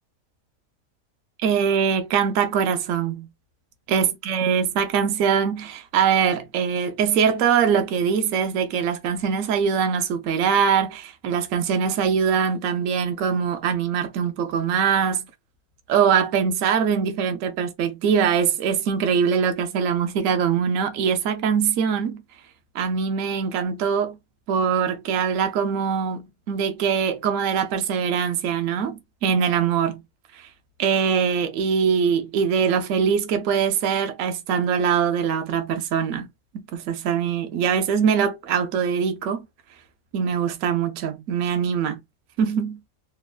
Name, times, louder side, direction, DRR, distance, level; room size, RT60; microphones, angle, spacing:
voice 1, 1.4-3.3 3.9-15.3 15.9-22.2 22.7-24.2 24.5-30.0 30.8-36.3 36.5-39.4 40.1-42.0 42.4-42.8, right 7 dB, 70° right, 1.0 m, -22 dB
3.0 x 2.2 x 2.3 m
omnidirectional pair, 1.5 m